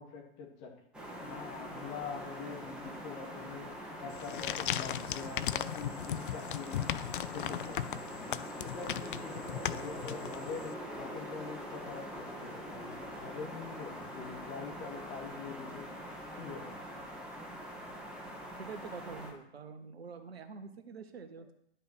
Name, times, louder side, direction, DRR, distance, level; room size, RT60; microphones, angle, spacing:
voice 1, 0.0-6.9 7.3-15.9 16.4-16.7, left 5 dB, 35° left, 1 dB, 2.3 m, -45 dB
sound 1, 0.9-19.3, equal, 5° right, 2.5 m, -44 dB
sound 2, 4.1-10.7, left 11 dB, 50° left, 0.5 m, -37 dB
voice 2, 18.6-21.5, right 5 dB, 70° right, 9 dB, 1.1 m, -46 dB
11.0 x 5.6 x 5.8 m, 0.75 s
figure-of-eight pair, 105°, 32 cm